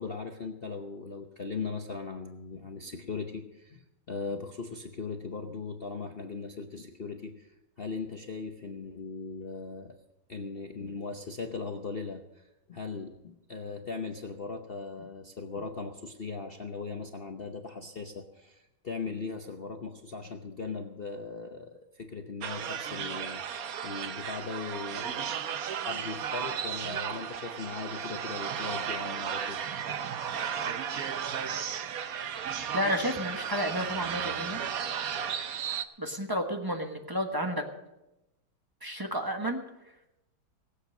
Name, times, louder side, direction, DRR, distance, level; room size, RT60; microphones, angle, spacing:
voice 1, 0.0-10.0 10.3-25.2 25.8-29.6, left 4 dB, 75° left, 4 dB, 0.5 m, -39 dB
sound 1, 22.4-35.8, right 8 dB, 60° right, 0.9 m, -34 dB
voice 2, 32.7-34.6 36.0-37.6 38.8-39.6, equal, 15° right, 4 dB, 0.9 m, -31 dB
19.0 x 8.3 x 6.5 m, 0.94 s
omnidirectional pair, 2.3 m